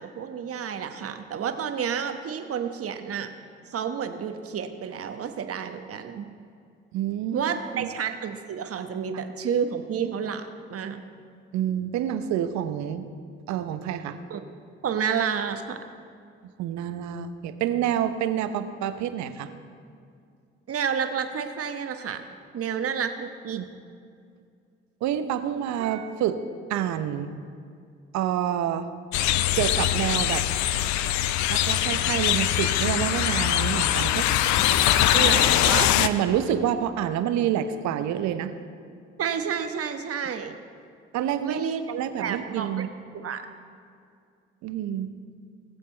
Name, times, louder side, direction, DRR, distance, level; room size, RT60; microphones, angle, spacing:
voice 1, 0.0-3.3 3.7-6.3 7.3-11.0 14.3-14.4 14.8-15.8 20.7-22.3 22.5-23.6 35.1-35.9 39.2-40.6 41.4-41.8 42.2-42.9 43.1-43.4, right 7 dB, 50° right, 7 dB, 1.1 m, -30 dB
voice 2, 6.9-7.4 7.7-7.9 11.5-13.1 13.5-14.2 16.6-19.5 23.5-23.7 25.0-26.4 26.7-27.3 28.1-28.9 29.5-30.5 31.5-34.3 36.0-38.5 41.1-41.6 41.9-42.9 44.6-45.1, right 10 dB, 70° right, 10 dB, 0.8 m, -27 dB
sound 1, 29.1-36.1, left 12 dB, 70° left, 0.6 m, -22 dB
20.0 x 7.4 x 4.4 m, 2.3 s
hypercardioid pair, 50°, 29 cm